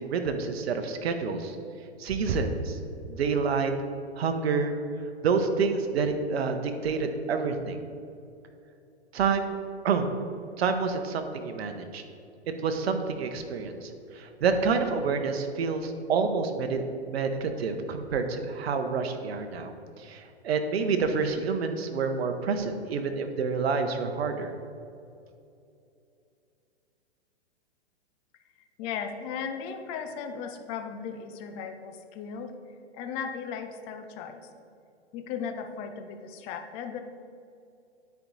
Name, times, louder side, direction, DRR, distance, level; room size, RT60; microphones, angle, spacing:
voice 1, 0.0-1.6 2.0-2.8 3.0-3.7 4.2-4.7 5.2-7.8 9.1-9.6 9.8-10.1 10.6-12.0 12.5-16.8 17.1-24.5, right 5 dB, 65° right, 6 dB, 1.0 m, -28 dB
voice 2, 28.8-32.5 32.9-34.5 35.1-37.0, left 6 dB, 20° left, 6 dB, 0.4 m, -36 dB
9.8 x 4.7 x 4.0 m, 2.6 s
hypercardioid pair, 120°, 34 cm